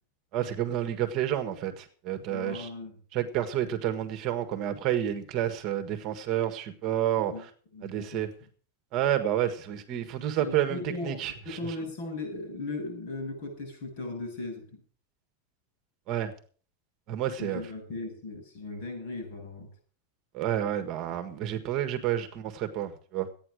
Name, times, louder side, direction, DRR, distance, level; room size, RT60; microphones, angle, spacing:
voice 1, 0.3-2.7 3.1-7.5 7.8-8.3 8.9-11.7 16.1-16.3 17.1-17.6 20.3-23.3, right 11 dB, 35° right, 8 dB, 1.5 m, -30 dB
voice 2, 2.3-3.0 7.3-7.4 7.7-8.3 10.4-11.2 11.4-14.8 17.4-19.7 21.1-21.2, left 2 dB, 55° left, 3 dB, 7.6 m, -37 dB
13.0 x 9.2 x 6.4 m, 0.43 s
supercardioid pair, 160°, 0 cm